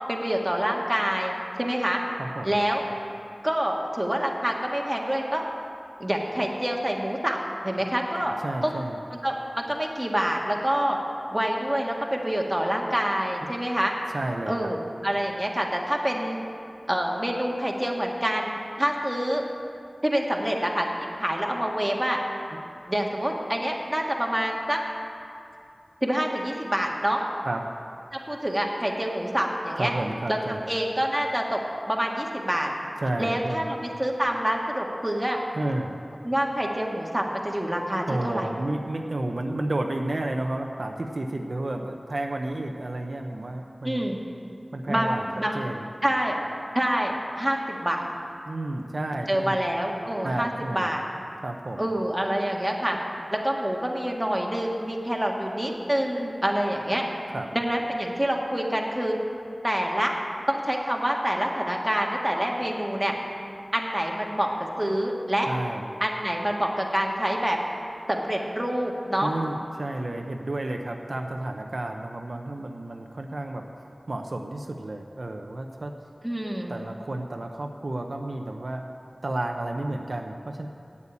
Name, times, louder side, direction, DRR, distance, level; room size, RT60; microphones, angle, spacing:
voice 1, 0.1-2.0 2.4-2.8 3.4-5.4 6.0-7.4 7.6-8.4 8.6-8.8 9.2-11.0 11.3-13.9 14.5-16.4 16.9-19.4 20.0-20.9 21.2-22.2 22.9-24.8 26.0-27.2 28.1-29.9 30.3-31.6 31.9-32.7 33.2-35.4 36.2-38.5 43.8-44.2 44.9-45.7 46.0-46.4 46.7-48.1 49.3-51.0 51.8-53.0 53.3-57.0 57.5-59.2 59.6-60.1 60.5-63.1 63.7-65.5 66.0-67.6 68.1-69.3 76.2-76.7, equal, 15° right, -1 dB, 1.7 m, -26 dB
voice 2, 8.4-9.0 14.1-14.7 27.4-27.6 29.7-30.6 33.0-33.7 35.5-36.0 38.1-44.1 44.7-45.3 45.5-45.9 48.5-49.6 50.2-50.9 51.4-51.9 57.3-57.5 65.5-65.9 69.2-73.6 74.1-75.9 76.7-78.8 79.2-80.7, right 2 dB, 70° right, 3 dB, 0.7 m, -31 dB
8.6 x 8.3 x 8.5 m, 2.5 s
wide cardioid pair, 40°, 0 cm